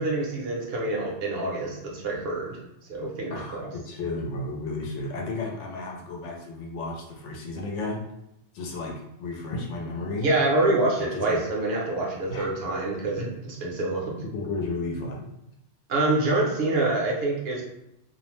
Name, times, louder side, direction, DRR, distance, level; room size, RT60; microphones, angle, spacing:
voice 1, 0.0-2.6 2.9-3.7 10.2-14.2 15.9-17.6, right 2 dB, 60° right, -2 dB, 0.9 m, -26 dB
voice 2, 3.3-8.0 8.5-10.3 11.0-11.4 12.3-12.5 14.3-15.3, left 2 dB, 75° left, 0 dB, 0.9 m, -33 dB
2.5 x 2.0 x 3.0 m, 0.82 s
omnidirectional pair, 1.3 m